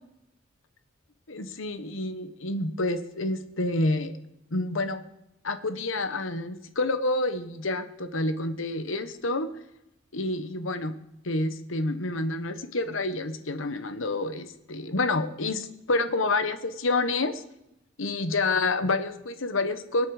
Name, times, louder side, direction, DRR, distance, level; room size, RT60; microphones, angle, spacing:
voice 1, 1.3-4.1 4.5-5.0 5.4-9.5 10.1-10.9 11.2-17.4 18.0-20.1, left 2 dB, 75° left, 10 dB, 1.2 m, -28 dB
23.5 x 8.6 x 5.0 m, 0.85 s
head